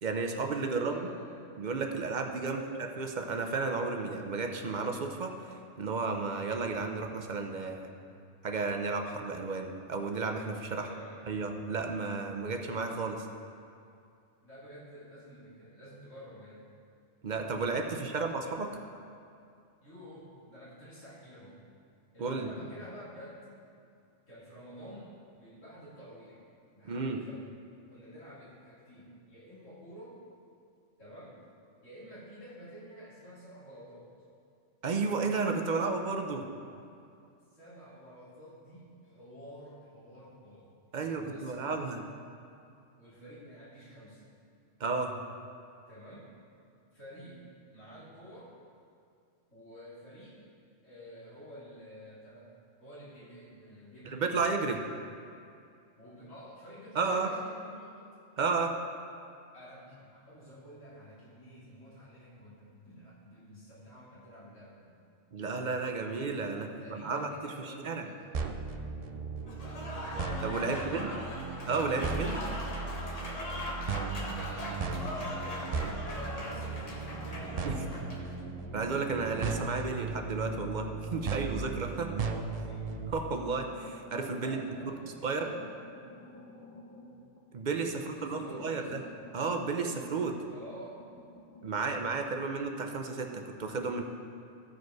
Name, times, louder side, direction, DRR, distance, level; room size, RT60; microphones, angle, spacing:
voice 1, 0.0-1.0 1.6-5.3 5.8-7.9 8.4-10.9 11.3-13.3 17.2-18.7 22.2-22.5 26.9-27.2 34.8-36.4 40.9-42.0 44.8-45.1 54.0-54.8 56.9-57.3 58.4-58.7 65.3-67.3 67.6-68.0 70.4-71.1 71.7-72.4 77.6-77.7 78.7-82.1 83.1-85.5 87.5-89.0 89.3-90.4 91.6-94.0, right 4 dB, 45° right, 3 dB, 0.7 m, -32 dB
voice 2, 0.7-1.5 2.4-2.7 10.7-11.5 14.4-16.6 17.9-18.2 19.8-21.6 22.1-23.5 24.3-26.4 26.7-27.5 27.9-30.2 31.0-31.4 31.8-34.1 37.5-42.1 43.0-44.3 45.9-46.3 46.9-47.4 47.7-48.5 49.5-50.4 50.8-52.5 52.8-54.5 56.0-58.2 59.5-64.9 66.6-68.4 70.6-71.4 74.0-78.2 82.0-82.9 84.3-85.8 88.0-88.9 90.5-91.0, equal, 80° left, -10 dB, 2.7 m, -50 dB
sound 1, 68.3-83.1, right 4 dB, 65° right, 0.3 m, -37 dB
Applause / Crowd, 69.5-78.3, left 1 dB, 35° left, 1.1 m, -40 dB
sound 2, 74.1-76.5 76.9-82.5 83.0-88.0 88.3-91.7, equal, 15° left, 0.8 m, -52 dB
14.5 x 5.1 x 4.7 m, 2.4 s
omnidirectional pair, 1.3 m